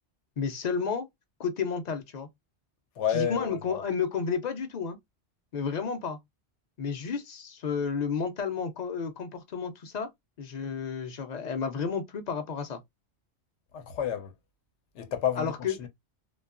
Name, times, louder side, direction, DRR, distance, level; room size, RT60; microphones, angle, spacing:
voice 1, 0.4-1.1 1.4-2.3 3.1-5.0 5.5-6.2 6.8-10.1 10.4-12.8 15.4-15.9, left 6 dB, 50° left, 0.5 m, -31 dB
voice 2, 3.0-3.8 13.7-14.3 14.9-15.5 15.8-15.9, left 9 dB, 90° left, 0.9 m, -30 dB
2.8 x 2.3 x 2.3 m
omnidirectional pair, 1.1 m